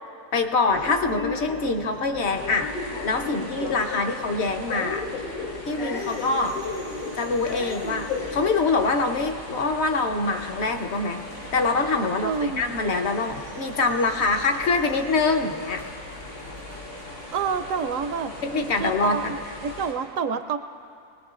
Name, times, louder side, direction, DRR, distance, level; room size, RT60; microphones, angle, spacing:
voice 1, 0.3-2.7 3.0-5.0 5.7-6.6 7.2-11.2 11.5-15.8 18.5-19.3, left 3 dB, 50° left, 5 dB, 1.0 m, -24 dB
sound 1, 0.7-19.9, left 3 dB, 70° left, 2.9 m, -37 dB
sound 2, 2.2-19.9, left 1 dB, 90° left, 5.6 m, -42 dB
voice 2, 12.2-12.6 17.3-18.3 18.8-19.2 19.6-20.6, right 6 dB, 70° right, 9 dB, 0.8 m, -27 dB
23.5 x 19.0 x 2.5 m, 2.4 s
omnidirectional pair, 1.6 m